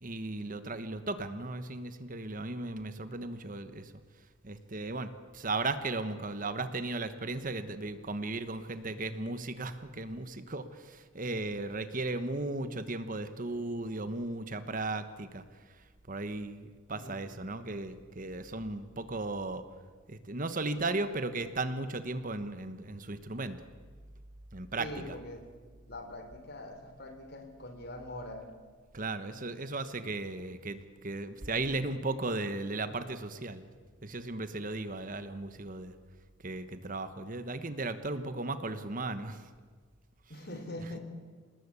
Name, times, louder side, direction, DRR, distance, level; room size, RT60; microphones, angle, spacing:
voice 1, 0.0-3.9 4.4-15.4 16.1-19.6 20.1-23.7 24.5-25.2 28.9-33.7 34.0-35.9 36.4-39.5, right 2 dB, 40° right, 11 dB, 1.2 m, -36 dB
voice 2, 16.9-17.4 24.8-25.5 25.9-28.5 40.3-41.0, left 1 dB, 50° left, 7 dB, 3.6 m, -43 dB
27.0 x 19.5 x 8.3 m, 1.5 s
head